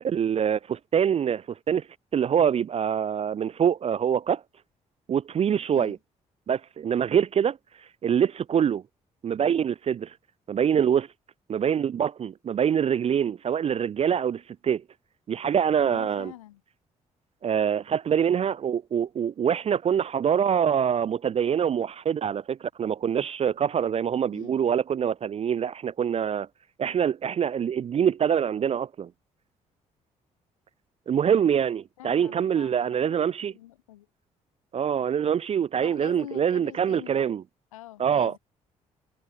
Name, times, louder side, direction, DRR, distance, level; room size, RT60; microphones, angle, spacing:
voice 1, 0.0-1.8 2.1-4.4 5.1-6.0 6.5-7.6 8.0-8.8 9.2-10.1 10.5-11.1 11.5-14.8 15.3-16.3 17.4-26.5 26.8-29.1 31.1-33.5 34.7-37.4 38.0-38.3, right 8 dB, 40° right, 0.4 m, -25 dB
voice 2, 15.9-16.6 24.3-24.6 32.0-34.1 35.7-37.3 37.7-38.4, left 15 dB, 90° left, 3.7 m, -45 dB
hypercardioid pair, 45°, 17 cm